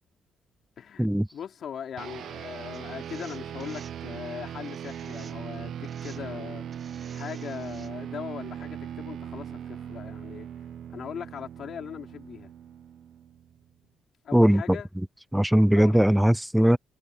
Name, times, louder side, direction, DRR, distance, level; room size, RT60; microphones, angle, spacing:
voice 1, 0.8-1.1 1.3-6.7 7.1-10.5 10.9-12.5 14.2-14.9 15.8-16.1, left 8 dB, 60° left, 4.3 m, -39 dB
sound 1, 2.0-13.7, right 9 dB, 70° right, 1.0 m, -39 dB
sound 2, 2.7-3.9 4.6-5.6 5.8-6.3 6.7-7.9, right 5 dB, 40° right, 2.7 m, -52 dB
voice 2, 14.3-14.8 15.3-16.8, equal, 5° right, 0.6 m, -20 dB
cardioid pair, 90°, 0 cm